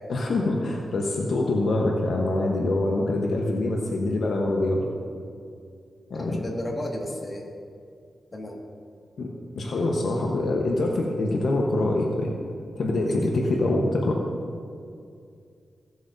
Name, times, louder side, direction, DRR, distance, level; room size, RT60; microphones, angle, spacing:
voice 1, 0.1-4.8 6.1-6.4 9.2-9.3 9.5-12.3 12.8-14.2, left 2 dB, 75° left, -1 dB, 1.1 m, -25 dB
voice 2, 6.2-7.4 8.3-8.6 13.1-13.2, left 1 dB, 35° left, -1 dB, 2.0 m, -33 dB
16.5 x 7.7 x 2.7 m, 2.3 s
cardioid pair, 65°, 0 cm